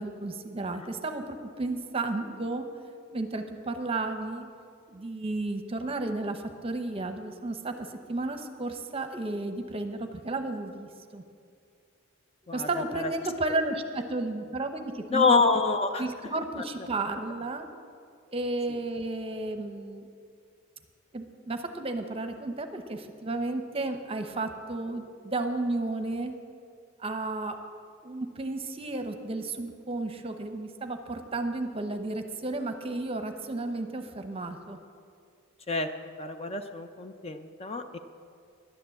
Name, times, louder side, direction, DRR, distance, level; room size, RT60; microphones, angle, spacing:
voice 1, 0.0-2.7 3.1-4.5 4.9-11.2 12.5-15.3 16.0-17.7 18.3-20.1 21.1-26.3 27.0-27.6 28.0-34.8, right 2 dB, 25° right, 7 dB, 0.8 m, -33 dB
voice 2, 15.1-16.0 16.6-16.7 18.7-18.8 35.7-35.9 36.2-38.0, left 4 dB, 30° left, 8 dB, 0.5 m, -26 dB
11.0 x 9.5 x 7.6 m, 2.3 s
head